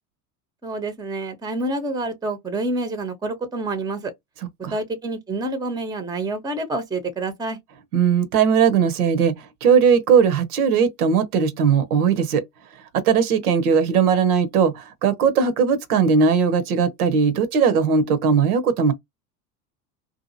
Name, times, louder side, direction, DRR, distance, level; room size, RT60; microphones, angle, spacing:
voice 1, 0.6-4.1 4.7-7.6, right 2 dB, 10° right, 0.7 m, -27 dB
voice 2, 7.9-12.4 12.9-18.9, right 6 dB, 65° right, 0.8 m, -19 dB
2.7 x 2.5 x 2.6 m
figure-of-eight pair, 75°, 49 cm